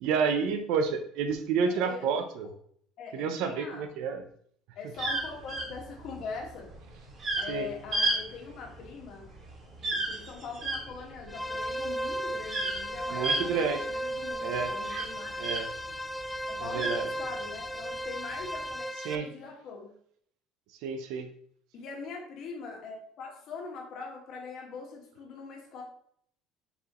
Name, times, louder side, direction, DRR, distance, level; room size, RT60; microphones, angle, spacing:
voice 1, 0.0-2.5 3.1-4.2 7.5-7.7 13.1-13.9 14.4-14.7 15.4-15.7 16.6-17.1 19.0-19.3 20.8-21.3, right 5 dB, 65° right, 7 dB, 0.6 m, -29 dB
voice 2, 1.6-2.3 3.0-3.9 4.8-6.7 7.4-9.3 9.8-15.3 16.5-18.9 19.1-19.9 21.7-25.8, left 5 dB, 45° left, 0 dB, 1.7 m, -42 dB
sound 1, 4.9-15.9 16.2-17.6 18.3-18.7, right 2 dB, 30° right, 1.9 m, -33 dB
sound 2, 11.3-19.1, equal, 5° left, 0.3 m, -35 dB
6.7 x 4.8 x 3.0 m, 0.64 s
cardioid pair, 175°, 0 cm